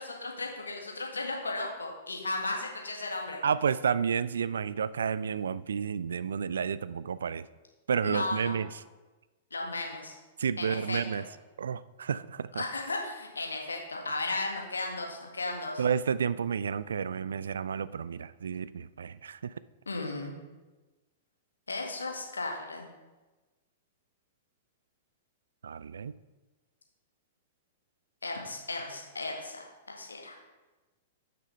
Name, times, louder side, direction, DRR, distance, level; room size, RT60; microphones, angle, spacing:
voice 1, 0.0-3.4 8.0-8.6 9.5-10.1 10.6-11.2 12.6-15.8 19.8-20.3 21.7-22.9 28.2-30.4, left 2 dB, 80° left, 1 dB, 1.7 m, -35 dB
voice 2, 3.4-7.5 7.9-8.7 10.4-11.3 11.6-12.6 15.8-19.5 25.6-26.1, right 7 dB, 70° right, 17 dB, 0.3 m, -31 dB
6.2 x 6.0 x 6.6 m, 1.2 s
figure-of-eight pair, 100°, 0 cm